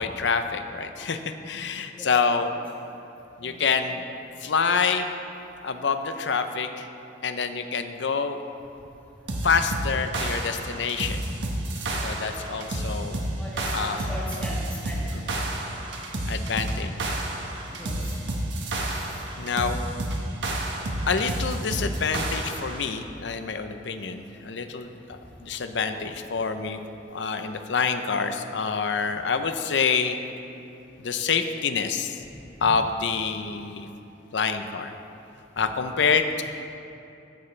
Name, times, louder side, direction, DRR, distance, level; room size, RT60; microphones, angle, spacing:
voice 1, 0.0-2.5 3.4-4.1 4.4-5.1 5.6-6.9 7.2-8.4 9.4-11.2 12.0-13.2 13.7-14.0 15.1-15.4 16.2-17.1 18.8-19.0 19.4-19.8 21.1-26.8 27.1-30.2 31.0-32.2 32.6-33.9 34.3-34.9 35.6-36.4, left 5 dB, 70° left, 8 dB, 0.6 m, -27 dB
voice 2, 1.9-2.6 3.4-3.6 13.4-15.3 16.9-17.0 17.7-18.1 18.9-19.2 33.3-33.4 35.9-36.1, equal, 10° left, -6 dB, 2.4 m, -40 dB
sound 1, 9.3-22.8, right 1 dB, 75° right, 1.4 m, -30 dB
14.0 x 11.0 x 3.3 m, 2.7 s
head